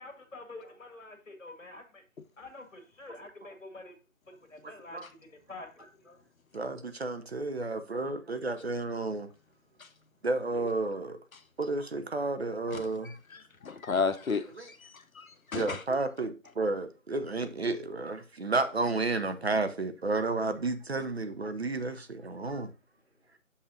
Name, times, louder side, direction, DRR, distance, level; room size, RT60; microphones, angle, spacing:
voice 1, 0.0-2.0 2.4-3.9 4.3-6.2, left 2 dB, 65° left, 1.7 m, -47 dB
voice 2, 4.6-5.1 6.5-9.3 10.2-11.2 11.6-13.2 14.6-14.7 15.5-22.7, right 3 dB, 50° right, 0.7 m, -32 dB
voice 3, 13.3-14.8 15.2-15.8, left 5 dB, 85° left, 0.7 m, -32 dB
6.5 x 5.6 x 2.7 m
figure-of-eight pair, 160°, 41 cm